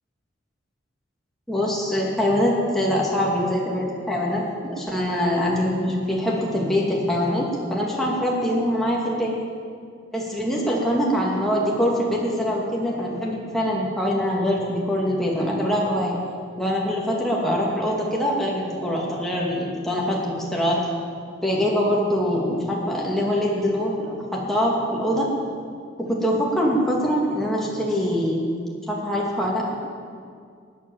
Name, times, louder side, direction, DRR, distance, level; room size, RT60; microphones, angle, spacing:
voice 1, 1.5-9.3 10.1-16.2 16.6-20.8 21.4-25.3 26.0-28.5 28.9-29.8, equal, ahead, -4 dB, 2.5 m, -23 dB
19.5 x 8.5 x 7.3 m, 2.2 s
head